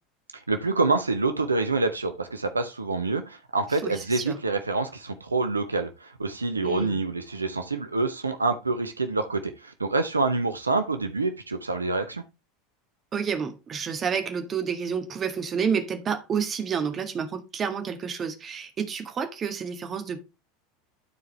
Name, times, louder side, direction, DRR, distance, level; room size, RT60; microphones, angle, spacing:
voice 1, 0.3-12.2, right 3 dB, 85° right, 0.8 m, -27 dB
voice 2, 3.8-4.4 6.6-7.0 13.1-20.2, right 6 dB, 30° right, 1.8 m, -29 dB
12.5 x 4.7 x 3.3 m
figure-of-eight pair, 80°, 0 cm